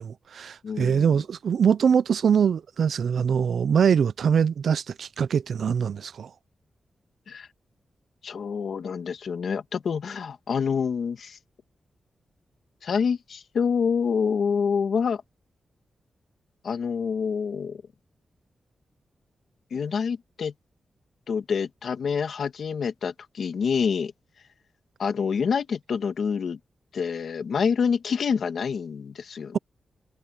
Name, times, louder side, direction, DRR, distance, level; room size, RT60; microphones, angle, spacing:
voice 1, 0.0-6.3, right 7 dB, 65° right, 0.4 m, -23 dB
voice 2, 0.6-1.1 7.3-7.5 8.2-11.4 12.8-15.2 16.6-17.8 19.7-20.5 21.3-24.1 25.0-26.6 26.9-29.6, left 6 dB, 65° left, 1.5 m, -27 dB
wide cardioid pair, 170°, 0 cm